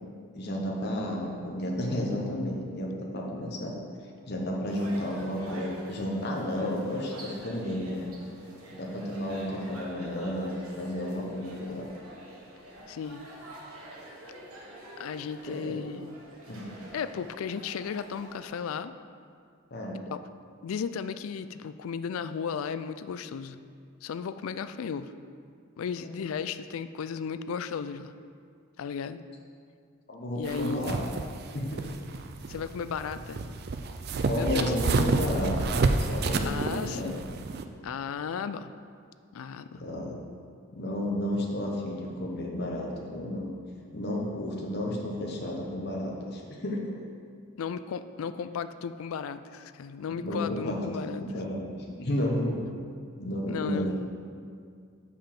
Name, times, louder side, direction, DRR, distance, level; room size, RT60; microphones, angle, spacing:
voice 1, 0.3-3.8 4.3-8.1 8.7-11.9 15.5-15.8 16.5-16.7 19.7-20.0 30.1-31.0 31.5-31.9 34.3-35.7 36.0-37.1 39.7-40.2 40.7-43.5 43.9-46.9 50.2-51.6 52.0-52.6 53.2-54.1, left 1 dB, 50° left, -2 dB, 1.0 m, -32 dB
sound 1, 4.7-18.6, right 1 dB, 90° right, 1.5 m, -46 dB
voice 2, 12.9-13.3 15.0-16.1 16.9-18.9 20.1-20.2 20.6-23.6 24.0-25.1 25.8-28.1 28.8-29.2 30.4-30.8 32.5-33.5 34.4-35.0 36.4-37.3 37.8-38.7 39.3-39.8 47.6-51.3 53.5-54.1, left 6 dB, 75° left, 12 dB, 0.3 m, -35 dB
sound 2, 30.5-37.6, right 3 dB, 45° right, 0.4 m, -30 dB
6.7 x 5.4 x 5.9 m, 2.2 s
head